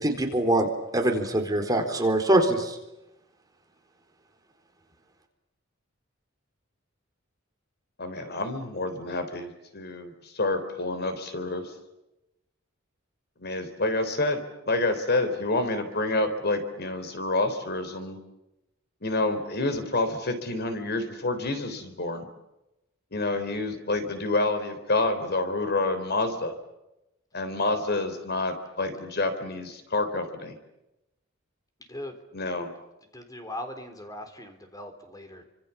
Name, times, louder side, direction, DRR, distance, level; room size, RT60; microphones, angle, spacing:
voice 1, 0.0-0.7 0.9-2.8, right 1 dB, 20° right, 3 dB, 4.1 m, -23 dB
voice 2, 8.0-11.7 13.4-18.2 19.0-22.2 23.1-26.5 27.3-30.6 32.3-32.7, left 2 dB, 55° left, 8 dB, 3.7 m, -28 dB
voice 3, 33.1-35.4, left 1 dB, 20° left, 7 dB, 3.8 m, -39 dB
29.5 x 26.0 x 7.2 m, 0.92 s
head